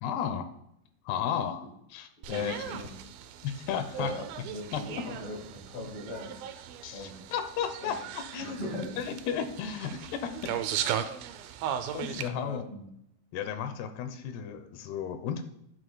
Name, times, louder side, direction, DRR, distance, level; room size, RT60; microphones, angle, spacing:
voice 1, 0.0-0.5 1.1-1.6 1.9-2.9 3.4-4.1 4.7-4.8 6.8-8.6 9.0-10.5 11.9-12.6 13.3-15.4, left 8 dB, 90° left, 8 dB, 2.9 m, -34 dB
sound 1, 2.2-12.3, right 9 dB, 80° right, 2.2 m, -37 dB
voice 2, 2.3-2.9 4.0-7.3 7.8-7.9 8.4-9.0 12.4-12.9, left 1 dB, 35° left, 0 dB, 2.8 m, -41 dB
17.0 x 8.1 x 2.2 m, 0.79 s
omnidirectional pair, 4.5 m